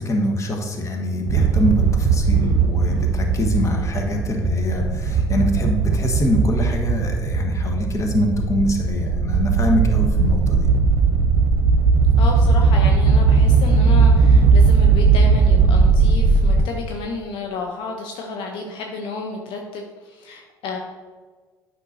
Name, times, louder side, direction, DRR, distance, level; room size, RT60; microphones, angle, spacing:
voice 1, 0.0-10.7, left 1 dB, 35° left, 2 dB, 1.3 m, -23 dB
sound 1, 1.3-16.6, right 4 dB, 65° right, 0.7 m, -17 dB
voice 2, 12.2-20.8, left 3 dB, 65° left, 2 dB, 0.7 m, -31 dB
8.4 x 5.8 x 2.7 m, 1.4 s
hypercardioid pair, 60°, 9 cm